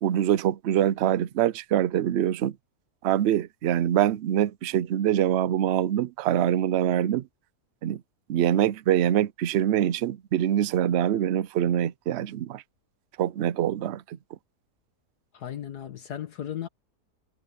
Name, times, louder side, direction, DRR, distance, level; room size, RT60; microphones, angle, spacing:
voice 1, 0.0-2.5 3.0-7.2 7.8-8.0 8.3-12.6 13.2-14.2, right 11 dB, 65° right, 0.7 m, -24 dB
voice 2, 15.3-16.7, left 10 dB, 75° left, 1.7 m, -35 dB
omnidirectional pair, 1.7 m